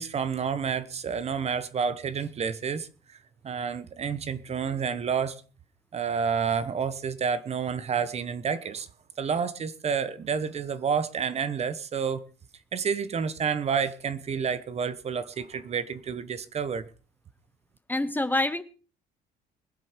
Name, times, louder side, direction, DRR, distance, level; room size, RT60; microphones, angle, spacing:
voice 1, 0.0-2.9 3.4-5.4 5.9-8.9 9.2-12.3 12.7-16.9, right 6 dB, 40° right, 1.1 m, -29 dB
voice 2, 17.9-18.6, left 2 dB, 10° left, 0.8 m, -26 dB
21.5 x 7.6 x 5.1 m
cardioid pair, 110°, 17 cm